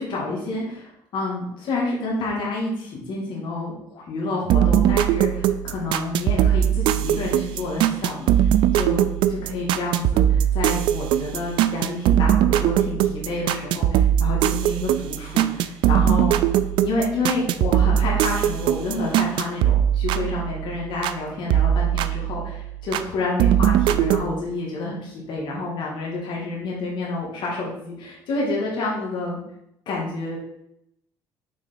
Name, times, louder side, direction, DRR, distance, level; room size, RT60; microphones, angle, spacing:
voice 1, 0.0-8.5 8.7-16.4 16.8-29.4 29.9-30.4, left 2 dB, 70° left, -4 dB, 2.3 m, -29 dB
sound 1, 4.5-21.2 21.5-23.1 23.4-24.2, right 11 dB, 75° right, 0.4 m, -21 dB
6.2 x 3.8 x 5.9 m, 0.77 s
cardioid pair, 85°, 8 cm